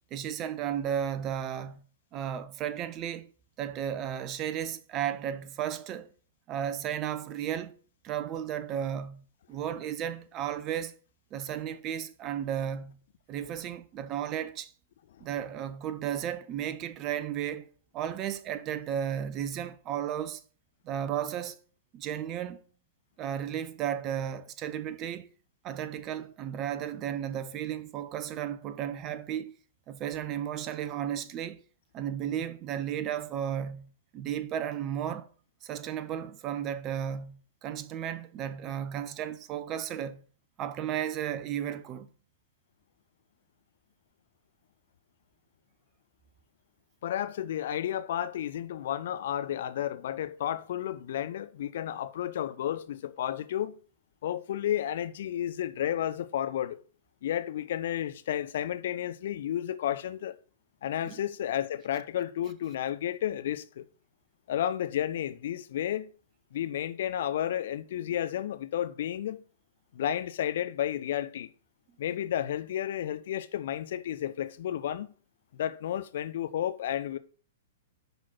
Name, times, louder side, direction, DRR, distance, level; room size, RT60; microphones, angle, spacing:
voice 1, 0.1-1.8 2.1-3.3 3.6-6.1 6.5-7.7 8.0-10.9 11.3-13.0 13.3-14.7 15.2-20.4 20.8-21.6 21.9-22.6 23.2-25.3 25.6-29.5 29.9-31.6 31.9-35.3 35.6-40.2 40.6-42.1 61.0-61.2, right 9 dB, 30° right, 0.7 m, -34 dB
voice 2, 47.0-53.8 54.2-56.8 57.2-60.4 60.8-63.8 64.5-66.1 66.5-69.4 69.9-71.5 72.0-75.1 75.5-77.2, left 11 dB, 55° left, 0.6 m, -32 dB
10.5 x 4.0 x 4.4 m
figure-of-eight pair, 105°, 0 cm